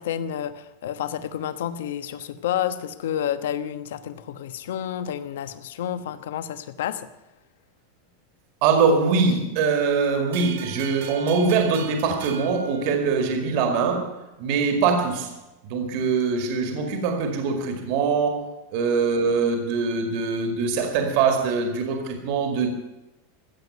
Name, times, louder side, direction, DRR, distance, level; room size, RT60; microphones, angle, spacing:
voice 1, 0.0-7.1, left 10 dB, 75° left, 11 dB, 1.1 m, -30 dB
voice 2, 8.6-15.3 15.6-22.7, right 5 dB, 40° right, 5 dB, 2.0 m, -23 dB
sound 1, 10.3-13.6, right 8 dB, 75° right, 3.0 m, -39 dB
15.0 x 8.2 x 9.2 m, 0.99 s
supercardioid pair, 180°, 0 cm